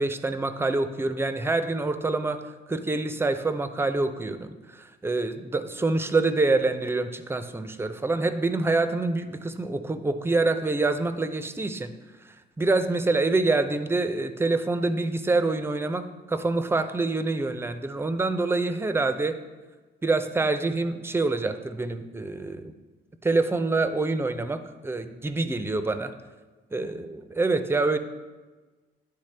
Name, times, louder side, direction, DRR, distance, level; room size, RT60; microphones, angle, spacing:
voice 1, 0.0-2.4 2.7-11.9 12.6-19.4 20.0-22.7 23.2-24.6 24.8-26.1 26.7-28.0, right 3 dB, 10° right, 10 dB, 0.4 m, -26 dB
10.0 x 3.3 x 3.3 m, 1.3 s
cardioid pair, 90°, 20 cm